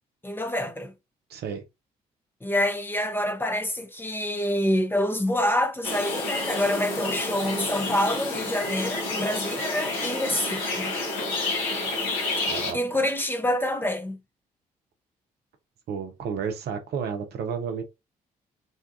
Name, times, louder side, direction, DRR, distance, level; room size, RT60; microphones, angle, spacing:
voice 1, 0.2-0.9 2.4-10.9 12.7-14.2, left 1 dB, 10° left, 0.6 m, -27 dB
voice 2, 1.3-1.6 12.5-12.8 15.9-17.8, right 6 dB, 60° right, 0.7 m, -31 dB
sound 1, 5.8-12.7, left 2 dB, 75° left, 0.8 m, -29 dB
2.7 x 2.3 x 2.5 m
hypercardioid pair, 45°, 19 cm